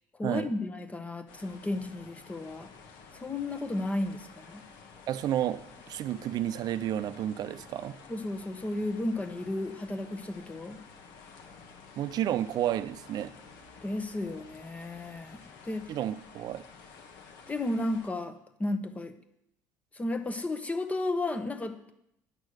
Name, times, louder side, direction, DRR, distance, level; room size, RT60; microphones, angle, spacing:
voice 1, 0.2-2.7 3.2-4.6 8.1-10.8 13.8-15.9 17.5-19.1 19.9-21.9, left 2 dB, 15° left, 1.1 m, -33 dB
sound 1, 1.3-18.1, left 5 dB, 75° left, 1.5 m, -52 dB
voice 2, 5.1-8.0 12.0-13.3 15.9-16.6, right 11 dB, 55° right, 0.6 m, -31 dB
9.8 x 6.3 x 6.5 m
supercardioid pair, 90°, 8 cm